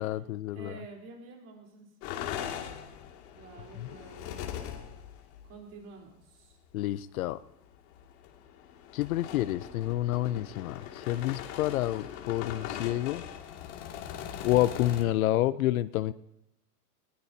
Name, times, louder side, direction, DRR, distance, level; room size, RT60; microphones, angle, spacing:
voice 1, 0.0-0.8 3.8-3.9 6.7-7.4 8.9-13.2 14.4-16.1, left 14 dB, 65° left, 16 dB, 0.7 m, -29 dB
voice 2, 0.5-1.9 3.4-4.6 5.4-6.6, right 3 dB, 30° right, 0 dB, 3.9 m, -49 dB
sound 1, 2.0-5.6 6.5-6.7 7.0-7.2 7.6-15.0, left 9 dB, 45° left, 2.4 m, -41 dB
20.0 x 19.5 x 2.8 m, 0.84 s
supercardioid pair, 145°, 46 cm